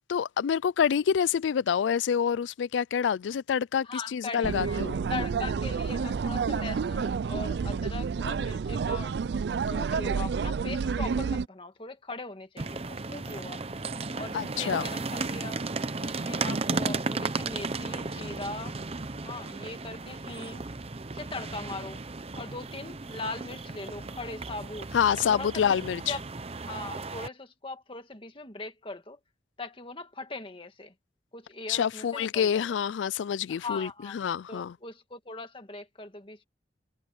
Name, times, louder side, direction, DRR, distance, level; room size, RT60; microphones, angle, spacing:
voice 1, 0.1-5.0 14.3-14.9 24.9-26.2 31.7-34.8, left 7 dB, 85° left, 0.4 m, -27 dB
voice 2, 3.8-4.8 5.1-9.1 9.7-13.6 14.1-15.6 16.0-18.8 19.2-20.7 21.1-22.0 22.3-24.9 25.3-25.8 26.1-26.2 26.7-29.2 29.6-30.9 31.3-32.7 33.5-34.2 34.5-36.4, left 3 dB, 30° left, 1.9 m, -40 dB
sound 1, 4.4-11.5, right 5 dB, 65° right, 0.4 m, -29 dB
sound 2, 12.6-27.3, right 3 dB, 35° right, 0.8 m, -35 dB
head